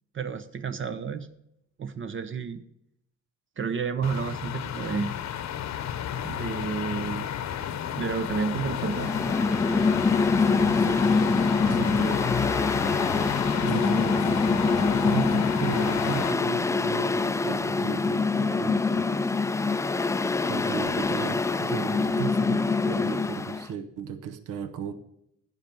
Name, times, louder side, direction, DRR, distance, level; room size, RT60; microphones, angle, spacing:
voice 1, 0.1-1.3 1.8-2.6 3.6-5.2 6.2-7.3 8.0-9.3, right 5 dB, 40° right, 11 dB, 0.7 m, -31 dB
sound 1, 4.0-16.3, left 9 dB, 60° left, 0.8 m, -32 dB
Mechanical fan, 8.8-23.7, left 4 dB, 10° left, 0.3 m, -25 dB
voice 2, 10.6-11.0 11.6-12.8 13.6-19.1 20.4-24.9, right 7 dB, 85° right, 11 dB, 0.8 m, -35 dB
9.8 x 5.4 x 7.4 m, 0.77 s
cardioid pair, 90°, 30 cm